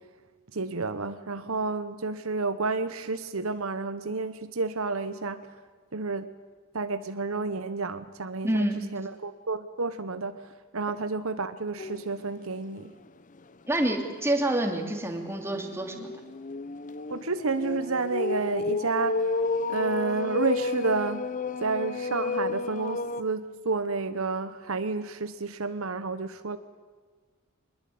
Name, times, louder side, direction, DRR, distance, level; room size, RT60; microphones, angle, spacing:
voice 1, 0.5-5.4 5.9-6.3 6.7-10.4 10.7-12.9 17.1-19.2 19.7-21.2 21.6-26.6, right 3 dB, 70° right, 11 dB, 1.0 m, -30 dB
voice 2, 8.4-8.8 13.7-16.1, right 1 dB, 10° right, 3 dB, 2.8 m, -27 dB
sound 1, 11.8-12.1 12.6-12.7 13.1-13.2 15.2-23.2, left 3 dB, 35° left, 0.7 m, -32 dB
24.0 x 21.0 x 8.6 m, 1.5 s
head